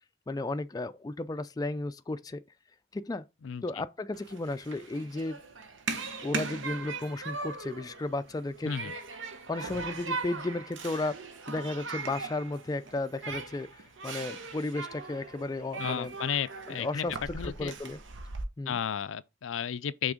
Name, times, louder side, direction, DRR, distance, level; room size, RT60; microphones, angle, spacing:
voice 1, 0.3-2.4 2.9-3.2 3.6-5.4 6.2-8.7 9.5-11.2 11.5-16.1 16.7-17.1 17.4-18.0 18.6-18.8, left 2 dB, 20° left, 0.3 m, -34 dB
voice 2, 3.4-3.8 8.7-8.9 15.8-17.1 17.3-17.7 18.7-20.1, left 8 dB, 90° left, 0.4 m, -33 dB
Human group actions, 4.1-18.4, right 4 dB, 80° right, 1.0 m, -39 dB
6.1 x 3.4 x 5.0 m
head